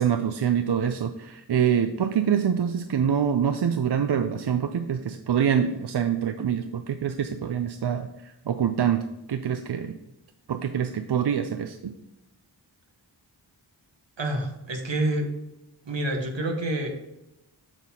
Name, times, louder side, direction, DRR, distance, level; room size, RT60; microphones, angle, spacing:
voice 1, 0.0-9.9 10.5-11.9, right 8 dB, 65° right, 8 dB, 0.5 m, -25 dB
voice 2, 14.2-15.3 15.8-16.9, right 1 dB, 85° right, 3 dB, 1.2 m, -27 dB
8.0 x 6.1 x 2.8 m, 0.91 s
wide cardioid pair, 40°, 43 cm